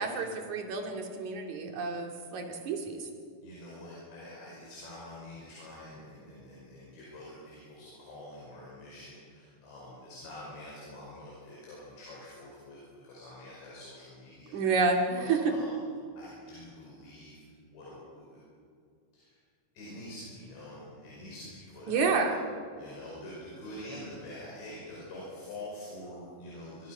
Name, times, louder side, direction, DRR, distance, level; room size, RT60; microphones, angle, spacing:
voice 1, 0.0-3.1 14.5-15.5 21.9-22.4, right 4 dB, 50° right, 2 dB, 3.3 m, -29 dB
voice 2, 3.4-14.9 15.2-15.7 16.2-17.4 17.7-18.4 19.1-19.4 19.8-22.5 22.8-26.9, left 1 dB, 90° left, -5 dB, 7.6 m, -46 dB
25.0 x 24.0 x 6.0 m, 2.2 s
omnidirectional pair, 4.9 m